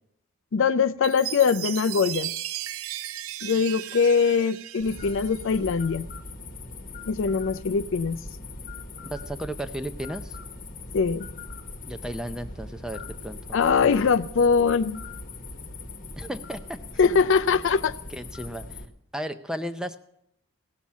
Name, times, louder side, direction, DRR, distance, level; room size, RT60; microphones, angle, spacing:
voice 1, 0.5-2.3 3.4-6.0 7.1-8.2 10.9-11.3 13.5-15.0 17.0-18.0, left 5 dB, 55° left, 0.4 m, -22 dB
Chime, 1.0-5.6, right 13 dB, 70° right, 0.4 m, -36 dB
sound 1, 4.8-18.9, left 3 dB, 40° left, 1.2 m, -40 dB
voice 2, 9.1-10.4 11.9-13.4 13.8-14.1 16.2-16.8 17.1-17.2 18.1-18.8 19.1-20.0, right 1 dB, 5° right, 0.5 m, -34 dB
17.0 x 7.2 x 7.2 m
head